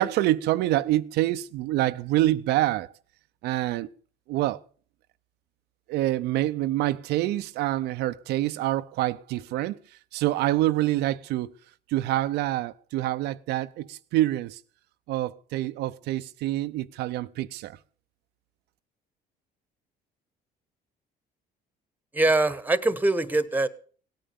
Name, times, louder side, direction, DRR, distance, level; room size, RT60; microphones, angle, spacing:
voice 1, 0.0-2.9 3.4-3.9 4.3-4.6 5.9-9.8 10.1-11.5 11.9-14.6 15.1-17.8, right 15 dB, 85° right, 0.6 m, -26 dB
voice 2, 22.1-23.7, right 2 dB, 10° right, 1.2 m, -23 dB
17.5 x 9.0 x 7.0 m
cardioid pair, 110°, 17 cm